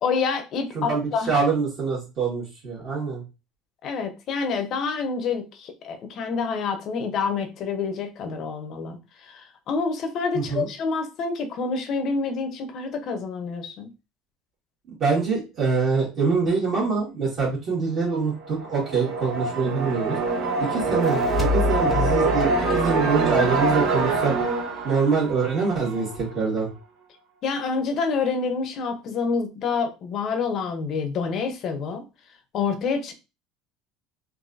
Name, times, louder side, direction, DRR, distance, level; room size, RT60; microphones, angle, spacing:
voice 1, 0.0-1.3 3.8-9.0 9.3-13.9 27.4-32.0 32.5-33.1, left 5 dB, 45° left, 0.7 m, -27 dB
voice 2, 0.7-3.2 10.3-10.7 15.0-20.2 20.7-24.3 24.8-26.7, right 4 dB, 40° right, 1.7 m, -24 dB
sound 1, 18.4-26.2, right 3 dB, 65° right, 1.0 m, -25 dB
sound 2, 20.8-24.1, left 5 dB, 10° left, 0.8 m, -29 dB
3.9 x 2.6 x 2.5 m
cardioid pair, 130°, 0 cm